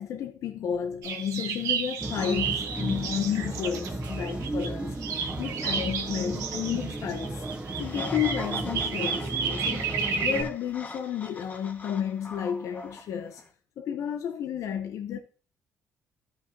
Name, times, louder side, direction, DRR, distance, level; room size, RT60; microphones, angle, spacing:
voice 1, 0.0-5.0 5.4-7.5 7.8-9.8 10.2-13.4 13.8-15.2, left 9 dB, 70° left, 0.8 m, -32 dB
sound 1, 1.0-4.7 5.0-10.4, right 6 dB, 75° right, 1.3 m, -32 dB
sound 2, 2.0-10.5, right 2 dB, 20° right, 1.2 m, -34 dB
sound 3, 7.8-13.5, left 2 dB, 30° left, 1.3 m, -43 dB
13.0 x 5.6 x 2.8 m
cardioid pair, 90°, 6 cm